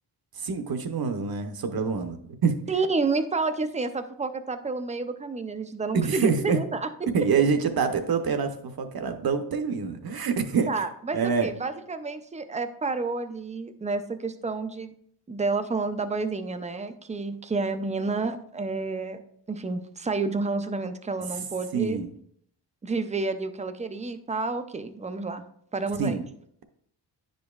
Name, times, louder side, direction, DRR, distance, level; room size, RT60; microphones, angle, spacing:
voice 1, 0.3-2.6 5.9-6.6 7.1-10.8 11.1-11.5 21.7-22.1 26.0-26.2, right 5 dB, 55° right, 7 dB, 0.8 m, -26 dB
voice 2, 2.7-6.9 10.7-14.9 15.3-19.2 19.5-22.0 22.8-25.4 25.7-26.2, right 3 dB, 20° right, 10 dB, 0.3 m, -30 dB
10.0 x 5.2 x 2.4 m, 0.67 s
wide cardioid pair, 145°, 44 cm